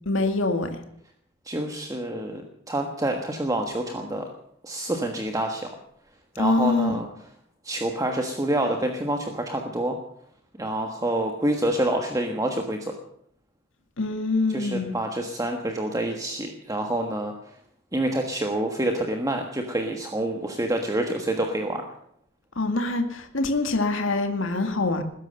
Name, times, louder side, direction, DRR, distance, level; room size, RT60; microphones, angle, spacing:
voice 1, 0.1-0.7 6.4-7.0 14.0-14.9 22.6-25.0, left 3 dB, 65° left, 2.1 m, -24 dB
voice 2, 1.4-4.3 4.6-5.7 6.4-7.1 7.6-10.0 10.6-12.9 14.5-17.3 17.9-21.8, right 1 dB, 15° right, 1.4 m, -27 dB
20.0 x 10.5 x 6.7 m
head